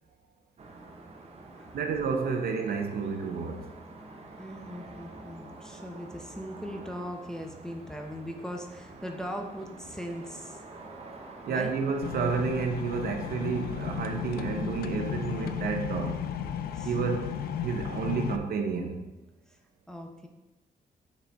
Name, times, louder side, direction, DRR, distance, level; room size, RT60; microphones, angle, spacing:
sound 1, 0.6-15.8, right 2 dB, 40° right, 0.8 m, -47 dB
voice 1, 1.7-3.7 11.5-16.2 16.8-19.0, right 5 dB, 75° right, 4 dB, 0.8 m, -30 dB
voice 2, 4.4-10.6 11.5-11.7 16.7-17.0 19.5-19.6 19.9-20.3, equal, 5° left, 2 dB, 0.6 m, -39 dB
sound 2, 12.0-18.4, left 9 dB, 80° left, 0.4 m, -34 dB
6.8 x 4.2 x 3.4 m, 1.0 s
cardioid pair, 115°, 16 cm